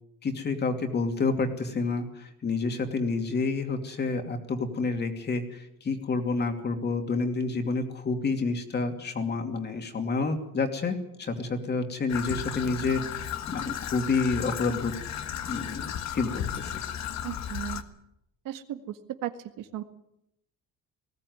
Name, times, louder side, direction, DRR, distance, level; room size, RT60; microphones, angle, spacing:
voice 1, 0.2-14.9 15.4-16.7, left 4 dB, 30° left, 5 dB, 2.6 m, -29 dB
Traffic noise roadway noise / Trickle dribble, 12.1-17.8, left 9 dB, 55° left, 1.5 m, -34 dB
voice 2, 17.2-17.8 18.5-19.3 19.6-19.8, right 12 dB, 80° right, 8 dB, 1.8 m, -35 dB
19.5 x 16.5 x 9.5 m, 0.81 s
cardioid pair, 170°, 32 cm